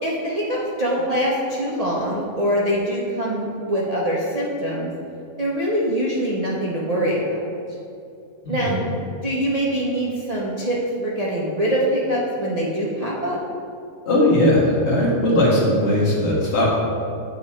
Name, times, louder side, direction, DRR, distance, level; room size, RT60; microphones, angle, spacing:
voice 1, 0.0-4.9 5.4-7.5 8.5-8.8 9.2-13.4, equal, 50° right, -5 dB, 0.4 m, -23 dB
voice 2, 14.0-16.7, left 1 dB, 45° left, -5 dB, 1.6 m, -18 dB
8.4 x 3.0 x 4.3 m, 2.6 s
omnidirectional pair, 1.6 m